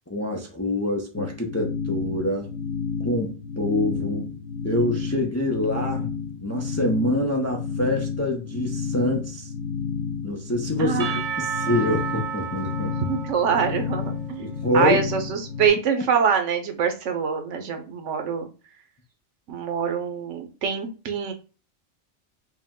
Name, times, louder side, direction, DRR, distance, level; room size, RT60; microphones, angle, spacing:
voice 1, 0.1-2.5 3.0-4.3 4.6-6.1 6.4-9.5 10.2-11.0 11.4-12.9 14.4-15.0, left 1 dB, 20° left, 0.4 m, -26 dB
sound 1, 1.2-15.7, left 6 dB, 75° left, 0.9 m, -31 dB
voice 2, 10.8-11.2 12.8-18.5 19.5-21.3, right 6 dB, 90° right, 1.1 m, -25 dB
Percussion / Church bell, 11.0-14.9, right 8 dB, 60° right, 0.4 m, -33 dB
4.9 x 2.2 x 3.6 m
omnidirectional pair, 1.2 m